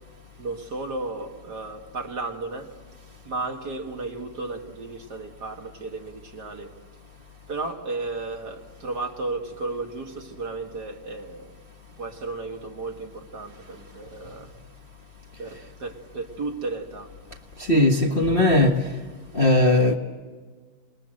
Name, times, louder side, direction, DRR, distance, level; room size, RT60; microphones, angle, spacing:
voice 1, 0.4-2.7 3.2-6.7 7.5-11.5 11.9-14.5 15.4-17.1, right 3 dB, 50° right, 2.3 m, -34 dB
voice 2, 17.6-18.9 19.3-20.0, left 1 dB, 30° left, 1.3 m, -19 dB
28.5 x 21.0 x 7.7 m
omnidirectional pair, 2.4 m